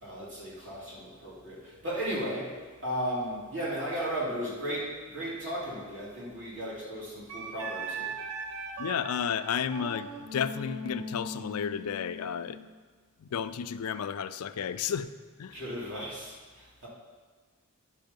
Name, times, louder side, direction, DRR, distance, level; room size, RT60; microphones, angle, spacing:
voice 1, 0.0-2.6 2.8-8.1 15.5-16.9, equal, 55° right, -6 dB, 2.9 m, -35 dB
Wind instrument woodwind instrument, 7.3-12.7, right 2 dB, 85° right, 1.1 m, -39 dB
voice 2, 8.8-12.6 13.2-15.1 15.4-15.6, left 7 dB, 75° left, 13 dB, 0.4 m, -32 dB
10.5 x 5.6 x 5.3 m, 1.5 s
head